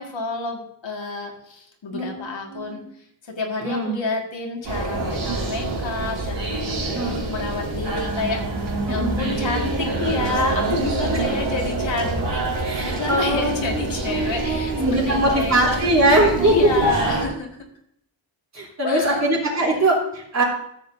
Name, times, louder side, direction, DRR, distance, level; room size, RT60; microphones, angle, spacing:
voice 1, 0.0-2.8 3.2-8.4 8.9-15.8 16.0-17.6 18.8-19.3, left 3 dB, 70° left, 0 dB, 2.0 m, -29 dB
voice 2, 1.9-2.8 3.6-3.9 6.9-7.2 8.9-9.2 12.6-16.5 18.5-20.4, right 1 dB, 35° right, -3 dB, 3.4 m, -22 dB
sound 1, 4.6-17.2, right 2 dB, 70° right, 2.6 m, -26 dB
14.0 x 7.9 x 2.7 m, 0.73 s
wide cardioid pair, 155°, 46 cm